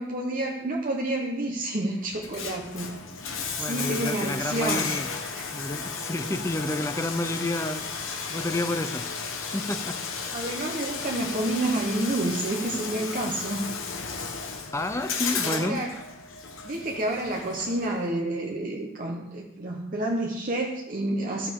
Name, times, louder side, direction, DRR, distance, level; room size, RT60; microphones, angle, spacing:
voice 1, 0.0-2.9 3.6-4.9 5.3-5.5 10.3-13.7 15.4-15.9 16.6-21.5, right 1 dB, 40° right, 0 dB, 0.9 m, -29 dB
Bathtub (filling or washing), 2.1-18.1, left 5 dB, 80° left, 1.1 m, -34 dB
voice 2, 3.2-5.1 5.5-9.1 9.5-10.0 14.7-15.8, left 1 dB, 15° left, 10 dB, 0.5 m, -30 dB
13.5 x 6.6 x 3.6 m, 0.87 s
head